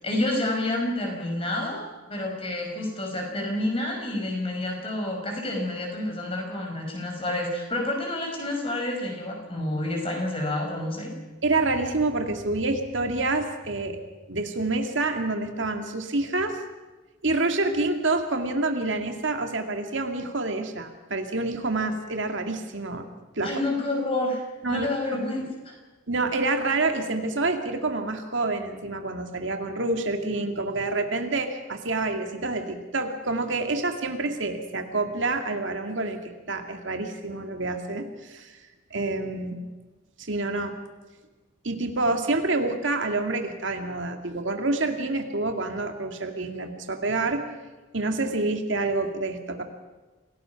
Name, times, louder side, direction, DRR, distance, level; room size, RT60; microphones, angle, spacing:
voice 1, 0.0-11.1 23.4-24.4 24.7-25.7, left 1 dB, 30° left, 1 dB, 5.5 m, -29 dB
voice 2, 11.4-14.0 14.3-16.6 17.2-23.0 23.4-23.5 24.6-25.2 26.1-38.6 38.9-39.6 40.2-40.8 41.6-47.4 47.9-49.6, right 2 dB, 65° right, 5 dB, 2.1 m, -27 dB
27.0 x 18.0 x 5.9 m, 1.2 s
head